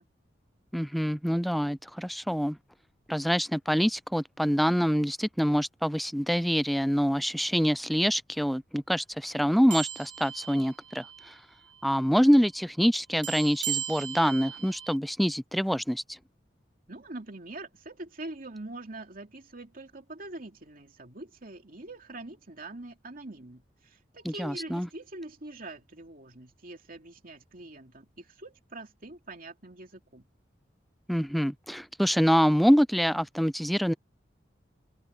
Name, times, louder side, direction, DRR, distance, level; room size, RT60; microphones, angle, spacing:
voice 1, 0.7-2.6 3.1-11.3 11.8-16.0 24.3-24.9 31.1-33.9, equal, ahead, 0.5 m, -25 dB
sound 1, 9.7-11.4 11.6-11.9 13.2-15.0, right 11 dB, 85° right, 2.3 m, -37 dB
voice 2, 16.9-30.3, right 2 dB, 55° right, 2.8 m, -44 dB
open air
head